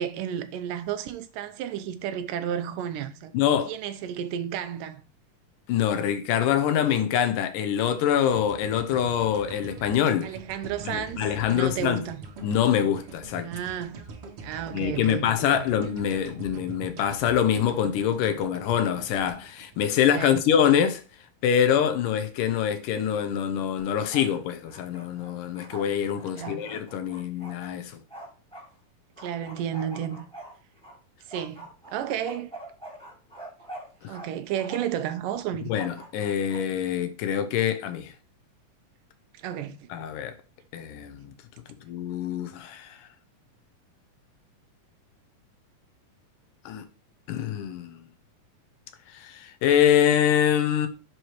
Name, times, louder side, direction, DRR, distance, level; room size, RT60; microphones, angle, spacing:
voice 1, 0.0-3.3 3.7-5.0 10.2-12.2 13.4-14.1 14.4-15.7 20.1-20.5 26.3-26.7 29.2-30.3 31.3-32.5 34.1-35.7 39.3-39.9, right 9 dB, 90° right, 2.4 m, -32 dB
voice 2, 3.3-3.7 5.7-10.4 10.8-12.0 12.4-13.5 14.7-21.0 21.4-28.0 34.0-34.2 35.7-38.1 39.9-40.3 40.7-41.3 41.8-43.1 46.7-46.8 47.3-48.0 49.1-50.9, left 9 dB, 85° left, 2.6 m, -25 dB
sound 1, 8.3-20.5, right 4 dB, 55° right, 1.7 m, -43 dB
Bark, 23.8-24.4 24.6-28.7 29.2-31.0 31.3-34.3 34.5-35.0 35.7-36.6, right 1 dB, ahead, 1.9 m, -43 dB
9.6 x 4.8 x 3.0 m
omnidirectional pair, 3.7 m